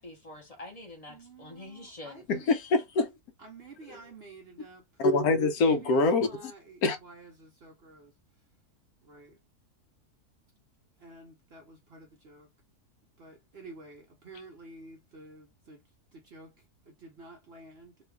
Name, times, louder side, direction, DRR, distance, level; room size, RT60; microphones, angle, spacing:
voice 1, 0.0-2.3, left 2 dB, 30° left, 0.9 m, -46 dB
voice 2, 1.1-2.5 3.4-4.8 5.6-8.1 9.0-9.4 11.0-12.5 13.2-15.8 16.1-16.5 16.9-17.9, right 3 dB, 55° right, 0.7 m, -50 dB
voice 3, 2.3-3.1 3.9-4.0 5.0-6.5 6.8-7.0, left 3 dB, 75° left, 1.1 m, -25 dB
3.0 x 2.4 x 3.3 m
omnidirectional pair, 1.6 m